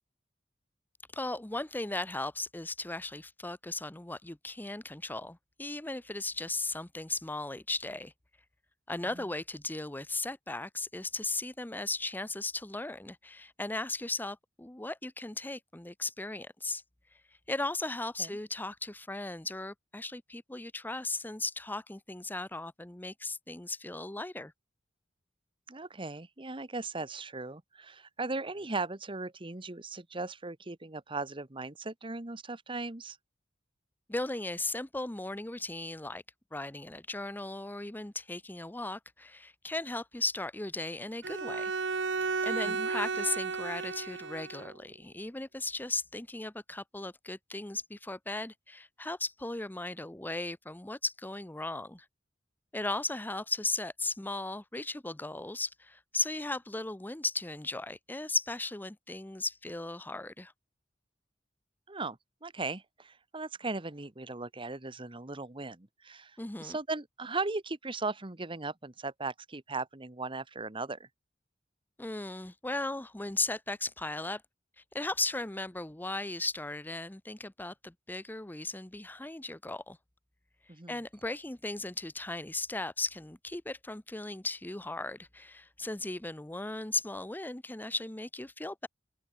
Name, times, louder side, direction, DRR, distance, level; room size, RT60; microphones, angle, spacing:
voice 1, 1.1-8.1 8.9-16.8 17.5-24.5 34.1-36.2 36.5-41.7 42.2-52.1 52.7-60.5 66.4-66.8 72.0-74.4 74.8-80.0 80.9-88.9, left 2 dB, 10° left, 0.7 m, -37 dB
voice 2, 25.7-33.2 42.6-42.9 61.9-71.1 80.7-81.0, right 3 dB, 30° right, 1.3 m, -38 dB
Bowed string instrument, 41.2-44.7, right 4 dB, 80° right, 1.3 m, -33 dB
open air
head